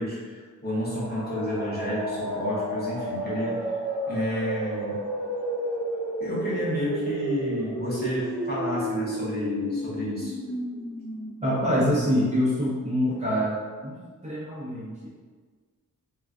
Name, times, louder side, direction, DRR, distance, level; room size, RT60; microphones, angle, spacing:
voice 1, 0.0-3.7 4.1-5.0 6.2-10.3, equal, 30° left, -7 dB, 0.8 m, -30 dB
sound 1, 0.7-12.4, right 1 dB, 5° left, 0.9 m, -32 dB
voice 2, 11.4-15.2, equal, 20° right, -9 dB, 0.5 m, -26 dB
3.7 x 2.3 x 2.4 m, 1.5 s
wide cardioid pair, 170°, 34 cm